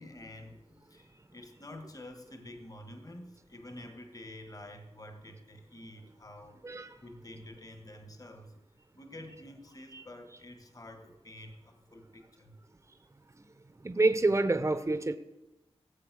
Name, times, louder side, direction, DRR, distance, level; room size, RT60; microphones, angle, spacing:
voice 1, 0.0-6.7 7.0-8.5 9.0-12.6, left 1 dB, 35° left, 1.8 m, -48 dB
voice 2, 6.6-7.0 9.9-10.0 13.8-15.1, right 2 dB, 25° right, 0.8 m, -27 dB
17.0 x 7.7 x 6.4 m
wide cardioid pair, 70°, 11 cm